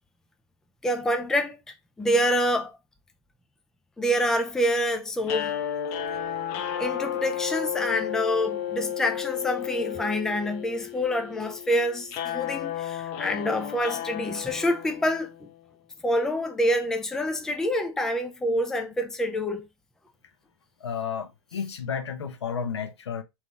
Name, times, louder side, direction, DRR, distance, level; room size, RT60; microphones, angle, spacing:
voice 1, 0.8-1.6 2.0-2.8 4.0-5.6 6.8-15.5 16.0-19.7, equal, 5° left, 0.4 m, -26 dB
sound 1, 5.2-15.5, left 10 dB, 40° left, 0.7 m, -33 dB
voice 2, 20.8-23.2, left 7 dB, 85° left, 1.0 m, -32 dB
3.4 x 3.1 x 4.0 m
hypercardioid pair, 140°, 14 cm